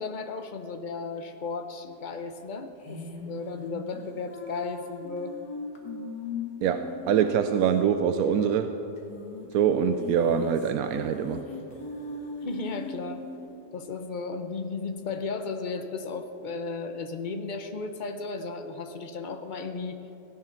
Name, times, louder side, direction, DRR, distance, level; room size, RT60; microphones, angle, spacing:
voice 1, 0.0-5.4 12.4-13.2 13.7-20.0, left 4 dB, 80° left, 7 dB, 0.4 m, -35 dB
sound 1, 2.8-7.7 8.0-8.1 8.3-8.4 9.0-9.5 9.9-13.5, left 4 dB, 65° left, 2.1 m, -39 dB
voice 2, 6.6-8.7 9.5-11.4, right 8 dB, 70° right, 8 dB, 1.0 m, -24 dB
16.5 x 9.8 x 5.8 m, 3.0 s
omnidirectional pair, 1.8 m